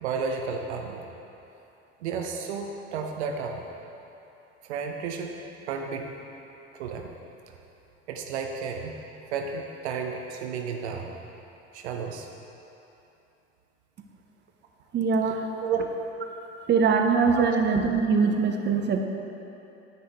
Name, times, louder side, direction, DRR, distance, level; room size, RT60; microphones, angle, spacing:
voice 1, 0.0-1.0 2.0-3.6 4.6-5.3 5.7-6.1 6.8-7.1 8.1-9.0 9.3-11.1 11.7-12.3 15.6-15.8 17.4-17.5, right 6 dB, 70° right, 3 dB, 0.8 m, -32 dB
voice 2, 14.9-15.5 16.7-19.0, right 5 dB, 30° right, 4 dB, 0.9 m, -22 dB
10.0 x 8.6 x 4.6 m, 2.9 s
figure-of-eight pair, 60°, 35 cm